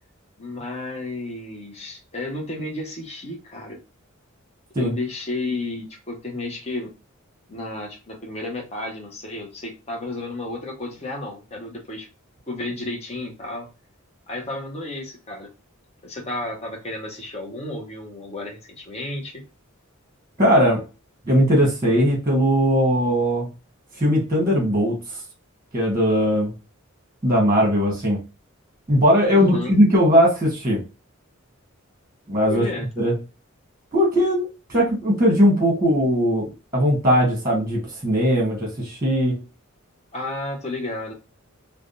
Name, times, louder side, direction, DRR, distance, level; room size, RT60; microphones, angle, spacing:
voice 1, 0.4-3.8 4.8-7.0 7.5-12.1 12.5-13.7 14.3-15.5 16.0-19.4 29.3-29.7 32.5-32.9 40.1-41.1, left 2 dB, 30° left, 0 dB, 0.7 m, -32 dB
voice 2, 20.4-20.8 21.3-23.5 24.0-25.0 25.7-26.5 27.2-28.2 28.9-30.8 32.3-32.6 33.0-33.1 33.9-36.5 36.7-39.3, equal, 20° right, -1 dB, 1.2 m, -19 dB
3.4 x 2.2 x 2.5 m, 0.29 s
head